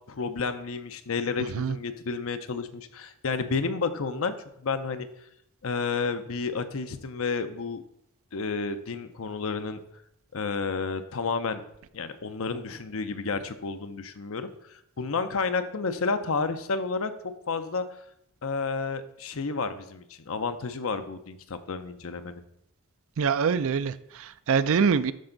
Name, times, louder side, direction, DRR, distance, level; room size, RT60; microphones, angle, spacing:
voice 1, 0.1-4.3 4.6-5.1 5.6-7.8 8.3-9.8 10.3-11.6 11.9-17.1 17.5-17.8 18.4-22.4, left 4 dB, 65° left, 10 dB, 0.7 m, -31 dB
voice 2, 23.2-25.1, right 6 dB, 65° right, 15 dB, 0.4 m, -24 dB
11.5 x 4.4 x 3.9 m, 0.75 s
head